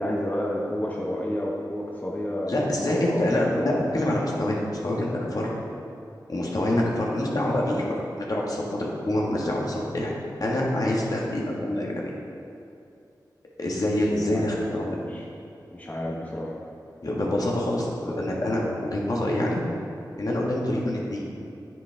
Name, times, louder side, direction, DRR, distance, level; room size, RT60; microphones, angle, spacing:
voice 1, 0.0-3.2 3.6-3.8 14.2-15.2 15.7-16.6, left 1 dB, 20° left, -3 dB, 1.2 m, -31 dB
voice 2, 2.5-3.5 3.8-4.6 4.8-5.5 6.3-10.1 10.4-12.1 13.6-15.0 17.0-19.6 20.2-21.2, left 1 dB, 55° left, -3 dB, 1.7 m, -26 dB
9.7 x 8.3 x 3.5 m, 2.6 s
wide cardioid pair, 60°, 8 cm